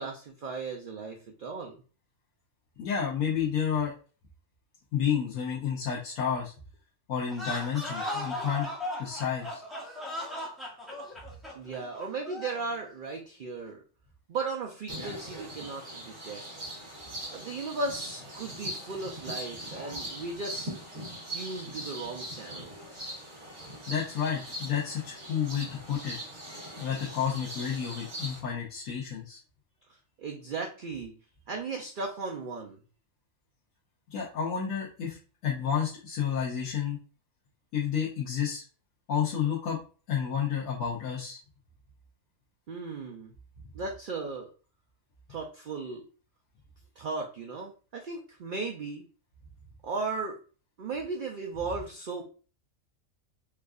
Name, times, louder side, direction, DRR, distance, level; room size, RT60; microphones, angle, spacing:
voice 1, 0.0-1.7 11.5-13.8 14.3-16.4 17.3-20.7 21.3-22.7 30.2-31.1 31.5-32.8 42.7-43.3 43.7-44.5 45.3-46.0 47.0-49.0 49.8-50.4 50.8-52.2, right 3 dB, 80° right, 1 dB, 0.4 m, -36 dB
voice 2, 2.8-3.9 4.9-6.5 7.1-8.7 9.0-9.6 23.9-26.2 26.8-29.4 34.1-35.2 35.4-37.0 37.7-38.6 39.1-39.8 40.1-41.4, left 8 dB, 90° left, -6 dB, 1.2 m, -30 dB
sound 1, 7.3-12.7, left 1 dB, ahead, 0.8 m, -37 dB
sound 2, 14.9-28.4, right 1 dB, 65° right, 2.1 m, -41 dB
4.5 x 2.4 x 2.3 m, 0.37 s
omnidirectional pair, 1.5 m